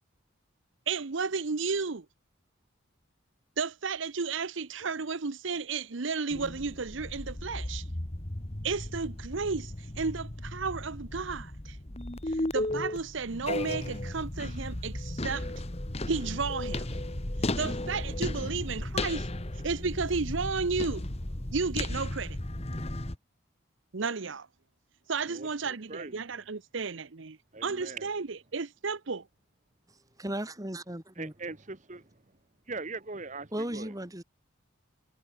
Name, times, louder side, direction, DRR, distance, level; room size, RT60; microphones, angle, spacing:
voice 1, 0.9-2.1 3.6-7.9 8.6-11.8 12.3-15.5 16.1-17.0 17.4-21.0 21.5-22.4 23.9-24.5 25.1-29.3, right 4 dB, 65° right, 0.8 m, -33 dB
sound 1, 6.3-23.2, left 1 dB, 30° left, 1.5 m, -35 dB
voice 2, 25.2-26.2 27.5-28.1 31.2-32.1 32.7-33.9, right 3 dB, 35° right, 1.3 m, -41 dB
voice 3, 30.2-31.3 33.5-34.2, right 1 dB, 15° right, 2.3 m, -36 dB
head